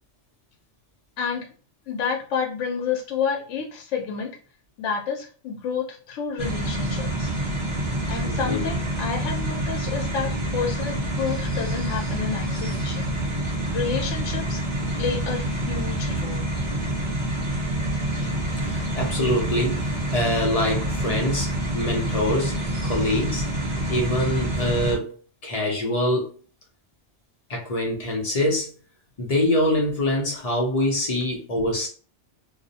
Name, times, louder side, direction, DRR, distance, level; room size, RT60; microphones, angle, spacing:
voice 1, 1.2-1.5 1.9-4.3 4.8-7.3 8.1-13.1 13.7-14.6 15.0-16.5, left 6 dB, 90° left, 0.9 m, -29 dB
sound 1, 6.4-24.9, right 1 dB, 30° right, 0.9 m, -27 dB
voice 2, 8.2-8.6 18.6-23.4 23.9-25.1 25.4-26.3 27.5-28.7 29.2-31.9, left 1 dB, 40° left, 0.6 m, -25 dB
2.6 x 2.0 x 2.7 m
omnidirectional pair, 1.2 m